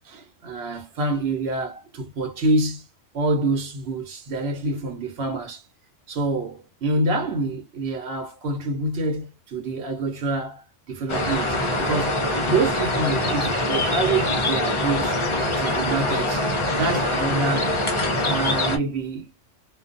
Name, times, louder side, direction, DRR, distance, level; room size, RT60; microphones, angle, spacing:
voice 1, 0.0-2.8 3.1-5.6 6.1-12.2 12.5-15.2 15.6-16.5 16.8-17.8 18.2-19.3, right 2 dB, 60° right, 1.0 m, -26 dB
sound 1, 11.1-18.8, left 1 dB, 35° left, 0.5 m, -24 dB
2.4 x 2.2 x 2.4 m
omnidirectional pair, 1.3 m